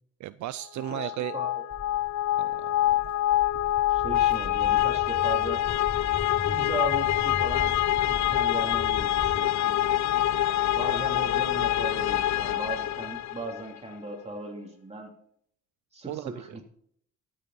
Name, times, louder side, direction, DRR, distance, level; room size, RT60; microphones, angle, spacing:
voice 1, 0.2-1.4 2.4-3.1 16.1-16.6, right 14 dB, 70° right, 15 dB, 0.5 m, -36 dB
sound 1, 0.8-13.6, left 13 dB, 65° left, 0.6 m, -26 dB
voice 2, 0.9-1.5 3.9-5.6 6.4-7.8 8.0-9.7 10.7-15.1 15.9-16.6, right 2 dB, 20° right, 1 dB, 3.3 m, -37 dB
Walk footsteps, 1.7-9.4, left 4 dB, 15° left, 0.6 m, -39 dB
13.0 x 8.8 x 4.2 m, 0.67 s
cardioid pair, 90°, 30 cm